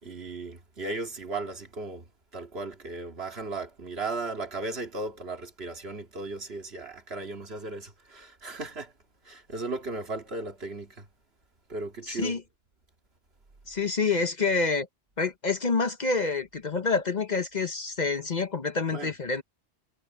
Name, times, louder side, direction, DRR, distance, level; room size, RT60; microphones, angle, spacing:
voice 1, 0.0-8.9 9.2-11.1 11.7-12.4 18.9-19.2, right 3 dB, 65° right, 2.4 m, -36 dB
voice 2, 12.1-12.4 13.7-14.9 15.2-19.4, left 4 dB, 45° left, 1.0 m, -27 dB
omnidirectional pair, 1.1 m